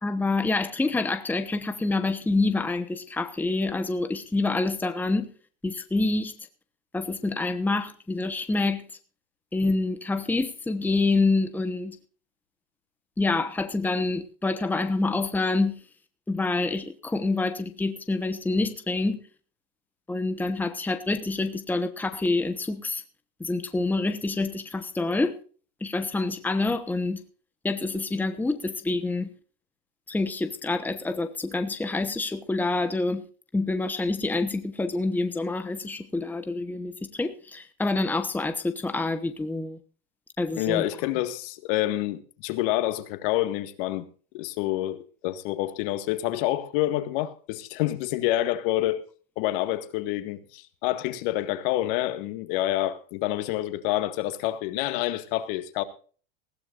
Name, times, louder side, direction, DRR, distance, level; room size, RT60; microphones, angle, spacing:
voice 1, 0.0-5.3 5.6-6.3 6.9-8.8 9.5-12.0 13.2-15.8 16.3-19.2 20.1-23.0 23.4-25.4 25.8-27.2 27.6-29.3 30.1-33.2 33.5-39.8 40.4-40.8, left 3 dB, 5° left, 1.1 m, -27 dB
voice 2, 40.6-44.1 44.3-49.0 49.4-55.8, left 15 dB, 60° left, 1.9 m, -28 dB
20.0 x 15.5 x 2.6 m
hypercardioid pair, 115°, 30 cm